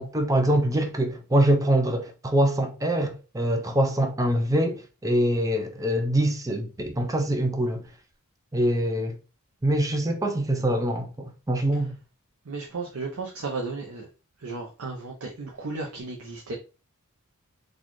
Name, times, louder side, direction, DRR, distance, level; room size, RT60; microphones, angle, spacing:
voice 1, 0.0-7.8 8.5-9.2 9.6-12.0, right 1 dB, 15° right, 0.5 m, -24 dB
voice 2, 12.4-14.1 14.4-16.5, right 3 dB, 75° right, 0.7 m, -34 dB
4.1 x 2.5 x 3.1 m
head